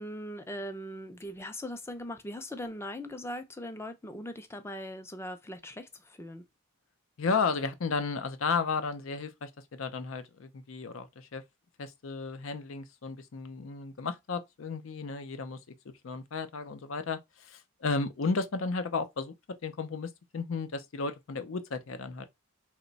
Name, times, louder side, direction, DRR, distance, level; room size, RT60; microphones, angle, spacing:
voice 1, 0.0-6.4, left 1 dB, 10° left, 0.5 m, -40 dB
voice 2, 7.2-11.4 11.8-15.6 16.0-19.3 19.6-22.2, left 4 dB, 70° left, 0.5 m, -33 dB
3.0 x 2.2 x 3.9 m
head